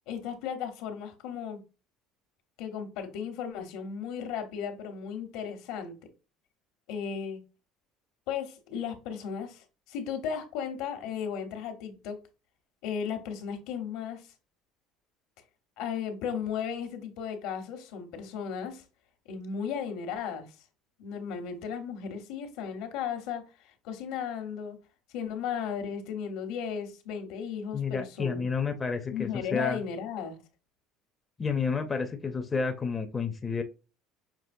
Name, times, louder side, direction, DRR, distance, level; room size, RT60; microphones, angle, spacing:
voice 1, 0.1-1.6 2.6-5.9 6.9-7.4 8.3-12.2 12.8-14.3 15.8-18.8 19.3-20.6 21.0-23.4 23.8-24.8 25.1-28.5 29.1-30.4, left 7 dB, 75° left, 1.0 m, -35 dB
voice 2, 27.7-29.8 31.4-33.6, left 5 dB, 15° left, 0.5 m, -30 dB
5.9 x 2.9 x 2.6 m
cardioid pair, 145°, 0 cm